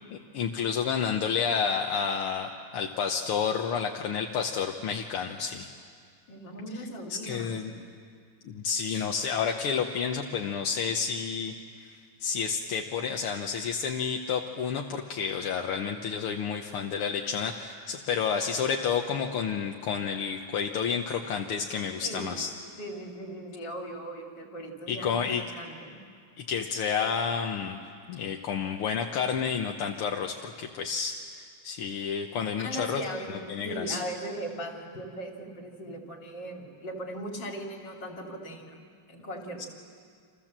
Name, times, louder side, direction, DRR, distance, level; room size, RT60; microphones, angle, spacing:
voice 1, 0.1-5.7 7.1-7.9 8.4-11.5 11.9-22.5 24.9-25.4 26.4-27.8 28.1-33.0 33.3-34.0 39.6-39.7, left 6 dB, 80° left, 2 dB, 2.0 m, -30 dB
voice 2, 6.3-7.8 22.0-22.3 22.8-26.0 32.6-38.8 39.1-39.7, right 1 dB, 55° left, 1 dB, 3.5 m, -38 dB
28.5 x 26.5 x 7.5 m, 2.2 s
omnidirectional pair, 2.4 m